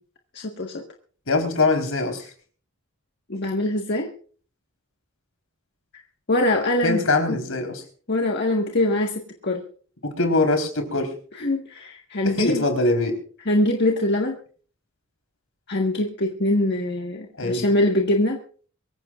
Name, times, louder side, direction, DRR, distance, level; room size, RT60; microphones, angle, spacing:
voice 1, 0.3-0.8 3.3-4.1 6.3-7.0 7.3-7.4 8.1-9.6 11.4-12.6 13.4-14.4 15.7-18.4, left 1 dB, 55° left, 1 dB, 1.6 m, -23 dB
voice 2, 1.3-2.3 6.8-7.8 10.0-11.1 11.4-11.5 12.2-13.2 17.4-17.7, left 2 dB, 80° left, 5 dB, 4.2 m, -22 dB
24.0 x 15.5 x 2.5 m, 0.44 s
head